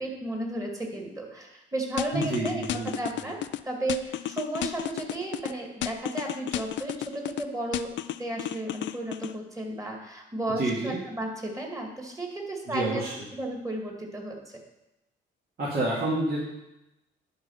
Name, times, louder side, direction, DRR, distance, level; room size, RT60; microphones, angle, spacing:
voice 1, 0.0-3.4 3.7-7.9 8.2-14.4, right 1 dB, 15° right, 1 dB, 2.2 m, -34 dB
sound 1, 2.0-3.6 3.9-5.5 5.8-7.4 7.7-9.3, left 13 dB, 65° left, 0.4 m, -32 dB
voice 2, 2.1-3.2 10.6-11.0 12.7-13.1 15.6-16.4, right 2 dB, 55° right, -6 dB, 2.1 m, -29 dB
11.0 x 3.8 x 5.7 m, 0.91 s
cardioid pair, 90°, 20 cm